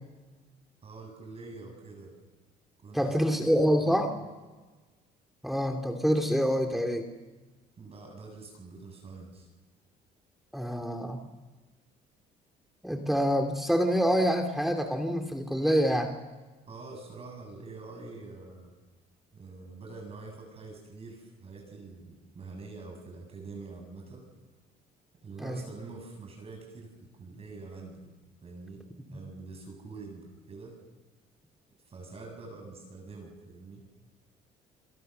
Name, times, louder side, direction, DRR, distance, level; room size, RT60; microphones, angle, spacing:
voice 1, 0.8-2.1 2.8-3.1 3.5-4.3 7.8-9.5 16.7-18.7 19.3-24.3 25.2-28.1 28.4-30.8 31.9-33.8, right 3 dB, 35° right, 2 dB, 7.2 m, -45 dB
voice 2, 2.9-4.1 5.4-7.1 10.5-11.2 12.8-16.2 25.4-25.6, equal, ahead, 4 dB, 2.7 m, -26 dB
29.0 x 22.5 x 6.7 m, 1.3 s
cardioid pair, 110°, 17 cm